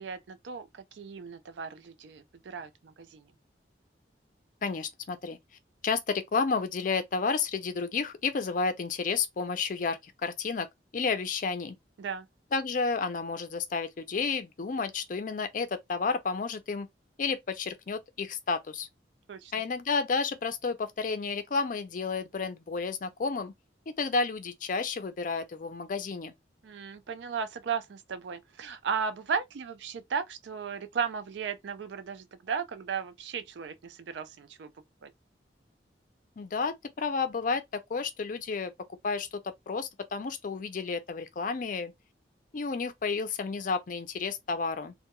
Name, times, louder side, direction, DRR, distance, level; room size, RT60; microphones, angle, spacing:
voice 1, 0.0-3.3 12.0-12.3 19.3-19.5 26.6-34.7 35.0-35.1, right 6 dB, 75° right, 0.4 m, -35 dB
voice 2, 4.6-5.4 5.8-10.7 10.9-11.8 12.5-16.9 17.2-18.9 19.5-23.5 23.9-26.3 36.4-38.7 39.0-41.9 42.5-44.9, left 4 dB, 45° left, 0.4 m, -31 dB
2.2 x 2.1 x 2.9 m
head